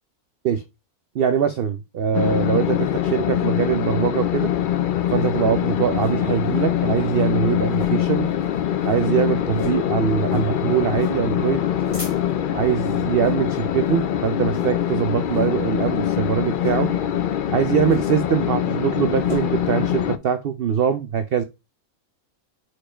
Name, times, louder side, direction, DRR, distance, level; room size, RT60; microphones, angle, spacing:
voice 1, 1.1-4.5 5.1-8.3 8.8-11.6 12.5-16.9 17.5-21.4, right 8 dB, 60° right, 10 dB, 0.6 m, -22 dB
sound 1, 2.1-20.2, left 10 dB, 70° left, 0.5 m, -23 dB
sound 2, 5.1-6.3 6.7-6.8 7.0-7.3 7.7-8.2 8.5-8.6 8.8-9.1 9.5-9.8 10.3-10.6 11.0-11.2 11.6-12.5 13.1-13.4 13.8-14.1 14.5-14.9 15.3-15.5 16.5-16.8 17.9-18.3 18.6-19.4, left 1 dB, 25° left, 1.9 m, -38 dB
5.0 x 4.5 x 4.3 m, 0.26 s
omnidirectional pair, 1.5 m